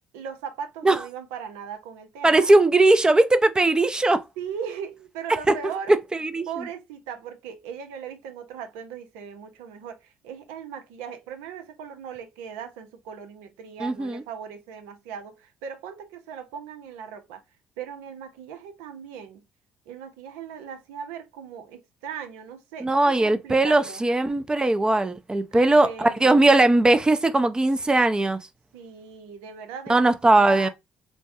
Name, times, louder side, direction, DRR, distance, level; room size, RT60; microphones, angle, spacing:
voice 1, 0.1-2.5 4.4-5.9 6.5-17.4 17.8-19.4 19.9-24.0 25.5-26.5 28.7-30.7, right 7 dB, 85° right, 0.7 m, -38 dB
voice 2, 2.2-4.2 5.5-5.7 6.2-6.5 13.8-14.2 22.8-28.4 29.9-30.7, right 2 dB, 20° right, 0.5 m, -19 dB
3.2 x 2.2 x 2.7 m
supercardioid pair, 65°, 4 cm